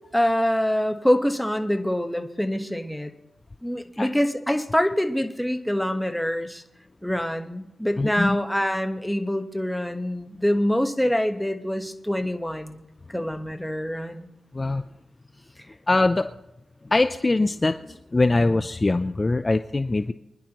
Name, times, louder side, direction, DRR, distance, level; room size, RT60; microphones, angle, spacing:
voice 1, 0.1-3.1 3.6-6.6 7.0-12.8 13.1-14.3, equal, 5° left, 5 dB, 1.3 m, -25 dB
voice 2, 8.0-8.4 14.5-14.8 15.9-16.3 16.9-17.8 18.1-20.1, left 2 dB, 30° left, 9 dB, 0.5 m, -22 dB
24.5 x 10.5 x 3.0 m, 0.88 s
cardioid pair, 65°, 0 cm